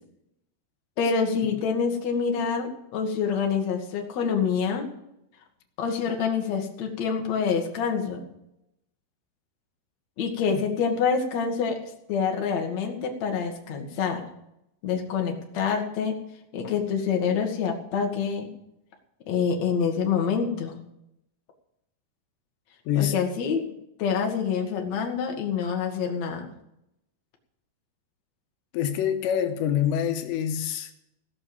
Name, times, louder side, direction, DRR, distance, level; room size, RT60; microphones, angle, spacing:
voice 1, 1.0-4.9 5.8-8.2 10.2-14.2 14.8-16.1 16.5-18.5 19.3-20.8 23.0-23.6 24.0-26.5, left 6 dB, 50° left, 2.6 m, -26 dB
voice 2, 22.9-23.2 28.7-30.9, left 9 dB, 85° left, 3.2 m, -26 dB
17.0 x 6.2 x 8.7 m
omnidirectional pair, 5.0 m